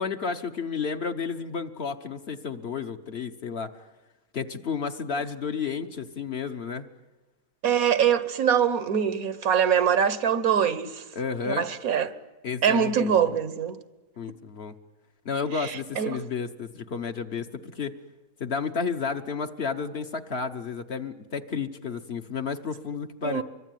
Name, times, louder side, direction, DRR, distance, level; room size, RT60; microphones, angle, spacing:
voice 1, 0.0-3.7 4.3-6.9 11.1-11.7 12.4-13.2 14.2-14.7 15.2-18.0 18.4-23.4, left 5 dB, 50° left, 1.2 m, -32 dB
voice 2, 7.6-11.0 11.5-12.1 12.6-13.8 15.6-16.2 23.2-23.4, right 8 dB, 80° right, 1.6 m, -23 dB
25.0 x 24.0 x 9.3 m
omnidirectional pair, 1.5 m